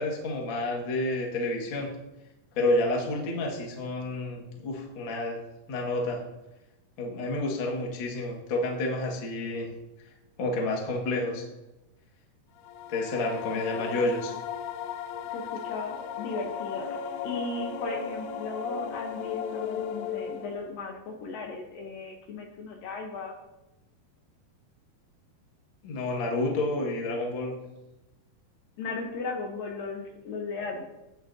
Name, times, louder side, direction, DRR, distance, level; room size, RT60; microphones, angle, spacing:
voice 1, 0.0-1.9 2.6-5.4 5.7-6.2 7.0-9.7 10.4-11.5 12.9-14.3 25.8-27.5, left 2 dB, 50° left, -1 dB, 1.6 m, -29 dB
sound 1, 12.6-20.7, left 8 dB, 85° left, 2.1 m, -36 dB
voice 2, 13.7-14.1 15.3-23.3 28.8-30.8, left 3 dB, 70° left, 2 dB, 2.4 m, -36 dB
18.0 x 7.0 x 2.7 m, 0.98 s
omnidirectional pair, 4.8 m